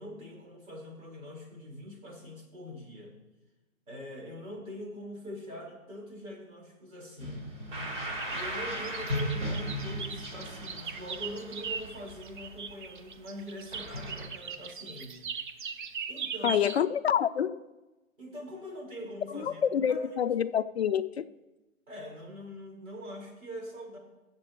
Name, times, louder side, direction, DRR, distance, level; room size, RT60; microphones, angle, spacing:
voice 1, 0.0-3.1 3.9-7.5 8.3-15.2 16.1-16.6 18.2-20.0 21.9-24.0, equal, 75° right, -1 dB, 4.8 m, -43 dB
sound 1, 7.2-13.2 13.7-14.3, equal, 55° right, 3.5 m, -36 dB
sound 2, 8.2-16.8, right 6 dB, 35° right, 0.6 m, -39 dB
voice 2, 16.4-17.6 19.3-21.3, left 8 dB, 50° left, 11 dB, 0.4 m, -27 dB
22.0 x 7.6 x 3.1 m, 1.1 s
hypercardioid pair, 145°, 42 cm